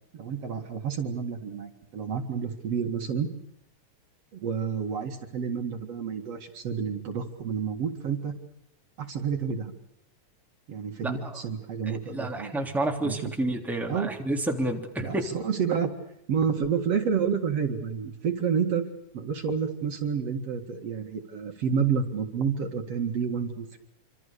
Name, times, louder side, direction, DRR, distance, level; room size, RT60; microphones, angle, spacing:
voice 1, 0.1-3.3 4.3-8.3 9.0-9.7 10.7-12.5 13.0-13.3 13.9-14.1 15.0-15.9 16.3-18.9 19.1-23.8, right 6 dB, 60° right, 5 dB, 3.0 m, -29 dB
voice 2, 11.8-15.2, right 1 dB, ahead, 2 dB, 3.1 m, -30 dB
27.0 x 26.0 x 6.8 m, 0.78 s
omnidirectional pair, 3.3 m